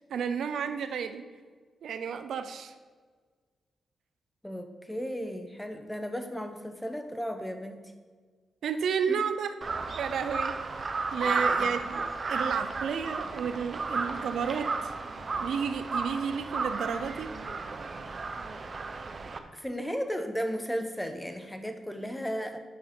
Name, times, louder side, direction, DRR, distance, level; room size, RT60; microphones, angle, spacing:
voice 1, 0.1-1.2 1.8-2.7 8.6-9.5 10.0-10.6 11.1-14.9 15.4-17.3, right 6 dB, 80° right, 10 dB, 0.5 m, -32 dB
voice 2, 4.4-7.9 9.1-9.2 11.6-12.0 19.2-22.6, equal, 5° left, 7 dB, 0.9 m, -35 dB
Crow, 9.6-19.4, right 4 dB, 45° right, 0.7 m, -33 dB
9.3 x 5.9 x 4.4 m, 1.5 s
cardioid pair, 70°, 0 cm